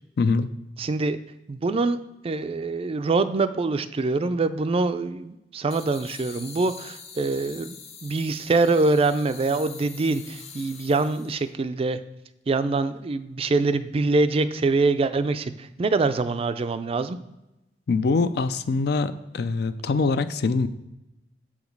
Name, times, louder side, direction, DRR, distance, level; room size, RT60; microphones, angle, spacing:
voice 1, 0.2-0.5 17.9-20.7, left 4 dB, 65° left, 12 dB, 0.4 m, -23 dB
voice 2, 0.8-1.2 1.5-2.0 2.2-7.8 8.0-12.0 12.5-17.2, right 3 dB, 35° right, 11 dB, 0.4 m, -24 dB
sound 1, 5.7-11.5, left 6 dB, 40° left, 0.8 m, -44 dB
7.2 x 4.9 x 5.3 m, 0.94 s
head